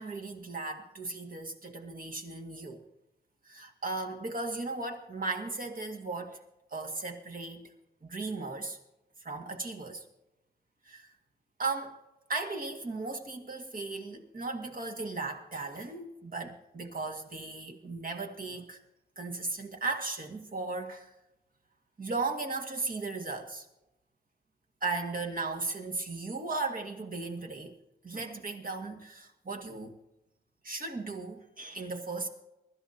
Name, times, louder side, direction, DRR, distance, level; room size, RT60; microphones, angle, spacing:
voice 1, 0.0-2.9 3.5-6.4 6.7-7.7 8.0-8.8 9.2-10.0 10.9-11.1 11.6-12.0 12.3-18.8 19.2-21.1 22.0-23.7 24.8-27.8 28.0-30.0 30.6-32.3, right 3 dB, 55° right, 2 dB, 2.0 m, -36 dB
23.5 x 13.5 x 2.9 m, 0.89 s
wide cardioid pair, 100°, 17 cm